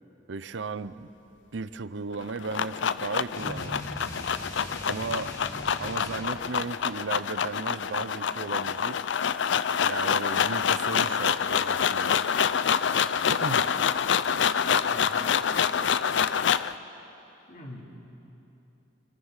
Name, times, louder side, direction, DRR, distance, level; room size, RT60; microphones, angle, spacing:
voice 1, 0.3-1.1 1.5-3.8 4.9-5.3 5.8-9.0 9.9-12.2 13.3-13.7, right 4 dB, 85° right, 14 dB, 0.7 m, -35 dB
sound 1, 2.1-16.7, left 7 dB, 75° left, 0.5 m, -26 dB
sound 2, 3.3-6.4, left 1 dB, 20° left, 2.7 m, -40 dB
voice 2, 4.9-5.2 14.9-15.2 17.5-17.8, left 1 dB, 45° left, -3 dB, 3.2 m, -43 dB
27.0 x 22.5 x 6.5 m, 3.0 s
head